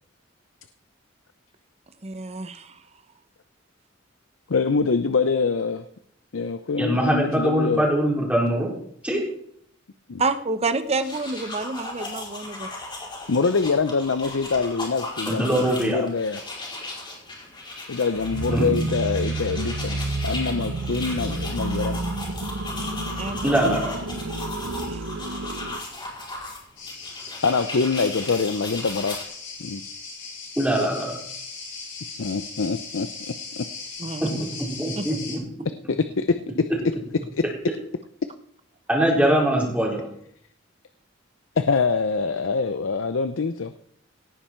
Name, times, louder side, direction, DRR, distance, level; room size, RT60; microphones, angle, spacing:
voice 1, 2.0-2.8 10.2-12.7 23.2-23.6 24.9-25.0 34.0-34.3 35.0-35.1, right 3 dB, 35° right, 11 dB, 0.9 m, -28 dB
voice 2, 4.5-5.8 6.3-7.8 10.1-10.2 13.3-16.4 17.9-20.0 20.2-22.0 22.8-22.9 23.6-23.8 27.4-29.2 29.6-29.8 32.2-33.1 33.6-33.7 35.9-36.4 37.3-37.4 41.6-43.7, left 4 dB, 90° left, 11 dB, 0.6 m, -24 dB
voice 3, 6.8-8.7 9.0-9.2 15.3-16.0 18.5-18.8 23.4-23.9 30.6-31.2 34.2-35.4 38.9-40.0, right 1 dB, 5° right, -2 dB, 4.2 m, -22 dB
sound 1, 10.8-29.2, left 2 dB, 25° left, 5.2 m, -36 dB
sound 2, 18.2-25.9, right 2 dB, 75° right, 0.8 m, -30 dB
sound 3, 26.8-35.4, left 4 dB, 65° left, 6.6 m, -38 dB
18.0 x 9.9 x 4.5 m, 0.68 s
head